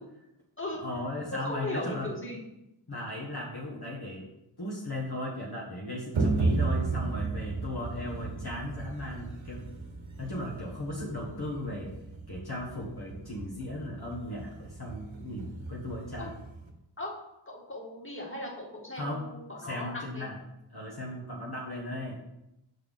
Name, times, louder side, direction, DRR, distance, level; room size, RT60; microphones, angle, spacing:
voice 1, 0.8-2.1 2.9-4.3 4.6-9.6 10.2-11.9 12.3-16.3 18.9-19.3 19.6-20.4 20.7-22.2, left 1 dB, 50° left, -4 dB, 1.4 m, -37 dB
voice 2, 1.4-2.4 16.2-16.3 17.0-17.1 17.5-20.3, left 1 dB, 25° left, -3 dB, 1.9 m, -37 dB
sound 1, 6.1-16.7, right 3 dB, 80° right, 1.0 m, -34 dB
6.8 x 5.9 x 3.6 m, 0.87 s
wide cardioid pair, 60°, 46 cm